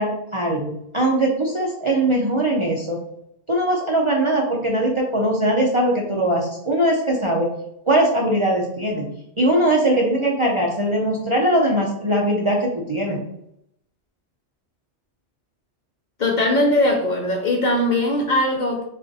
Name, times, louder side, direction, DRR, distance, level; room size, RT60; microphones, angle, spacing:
voice 1, 0.0-3.0 3.5-7.5 7.9-9.1 9.4-13.2, right 1 dB, 40° right, -2 dB, 0.5 m, -20 dB
voice 2, 16.2-18.8, left 1 dB, 55° left, 1 dB, 0.5 m, -20 dB
3.6 x 2.4 x 3.9 m, 0.77 s
omnidirectional pair, 1.1 m